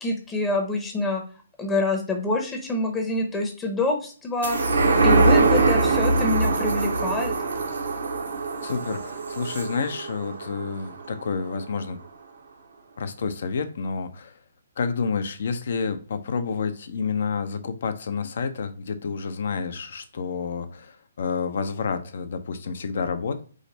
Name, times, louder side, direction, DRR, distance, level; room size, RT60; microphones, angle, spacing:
voice 1, 0.0-1.2 1.6-4.6 5.0-7.3, left 2 dB, 10° left, 3 dB, 0.8 m, -26 dB
sound 1, 4.4-11.2 11.6-11.7, right 3 dB, 85° right, 1.2 m, -23 dB
voice 2, 8.6-12.0 13.0-14.4 14.8-23.4, left 5 dB, 60° left, 9 dB, 0.6 m, -29 dB
5.0 x 2.1 x 4.0 m, 0.41 s
hypercardioid pair, 145°, 0 cm